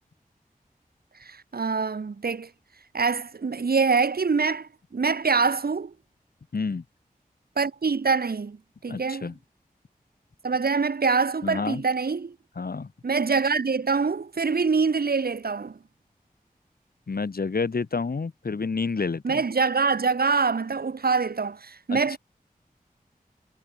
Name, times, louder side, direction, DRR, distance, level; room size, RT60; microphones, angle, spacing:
voice 1, 1.2-2.5 2.9-5.9 7.6-9.3 10.4-12.4 13.0-15.8 19.2-22.2, right 4 dB, 85° right, 3.9 m, -25 dB
voice 2, 6.5-6.8 8.9-9.3 11.4-11.8 12.6-12.9 17.1-19.4 21.9-22.2, left 4 dB, 80° left, 5.2 m, -29 dB
wide cardioid pair, 60°, 15 cm